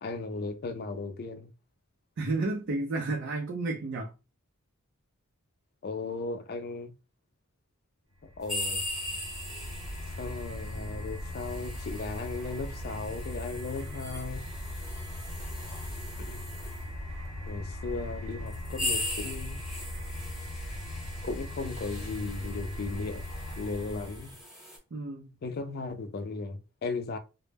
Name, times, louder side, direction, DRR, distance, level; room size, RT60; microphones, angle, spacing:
voice 1, 0.0-1.5 5.8-6.9 8.2-8.8 10.2-14.5 16.2-16.4 17.5-19.6 21.2-23.2 23.6-24.4 25.4-27.2, left 3 dB, 45° left, 0.4 m, -36 dB
voice 2, 2.2-4.1 24.9-25.3, right 2 dB, 55° right, 0.4 m, -31 dB
sound 1, 8.2-24.4, left 1 dB, 70° right, 0.9 m, -39 dB
sound 2, 8.4-16.9 17.7-17.8 18.4-24.8, left 1 dB, ahead, 0.9 m, -40 dB
2.1 x 2.0 x 3.3 m
head